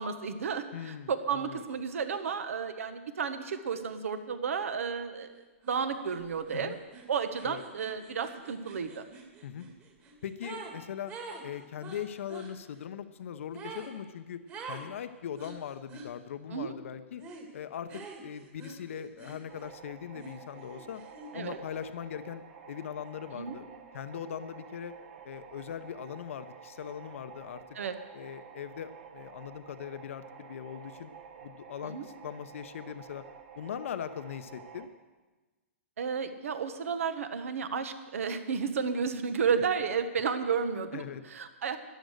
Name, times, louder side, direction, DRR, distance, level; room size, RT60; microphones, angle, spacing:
voice 1, 0.0-5.3 5.7-6.7 7.1-9.0 16.5-16.7 21.3-21.6 23.3-23.6 27.7-27.9 31.8-32.0 36.0-41.8, right 6 dB, 75° right, 10 dB, 1.3 m, -32 dB
voice 2, 0.7-1.6 6.5-6.8 7.4-7.6 9.4-9.7 10.2-11.1 11.4-14.4 14.7-17.2 17.5-21.0 21.3-23.7 23.9-24.9 25.2-27.6 28.1-31.1 31.4-33.2 33.6-34.9 40.9-41.2, left 9 dB, 70° left, 11 dB, 0.7 m, -40 dB
sound 1, 5.6-5.8 6.1-10.8 11.1-12.5 13.5-13.9 14.5-14.9 15.4-16.1 17.2-17.5 17.9-19.7 20.1-21.5, right 4 dB, 25° right, 2.3 m, -46 dB
sound 2, 19.5-34.9, right 7 dB, 60° right, 1.6 m, -50 dB
13.0 x 10.5 x 6.6 m, 1.2 s
hypercardioid pair, 135°, 7 cm